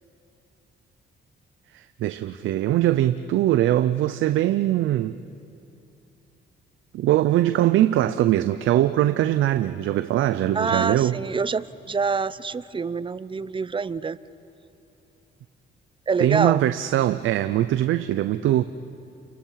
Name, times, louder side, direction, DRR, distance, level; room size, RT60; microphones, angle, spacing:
voice 1, 1.7-5.2 6.9-11.2 16.2-18.6, right 13 dB, 80° right, 11 dB, 0.6 m, -21 dB
voice 2, 10.5-14.2 16.1-16.6, right 5 dB, 25° right, 16 dB, 0.7 m, -26 dB
29.5 x 27.0 x 5.8 m, 2.7 s
cardioid pair, 90°, 20 cm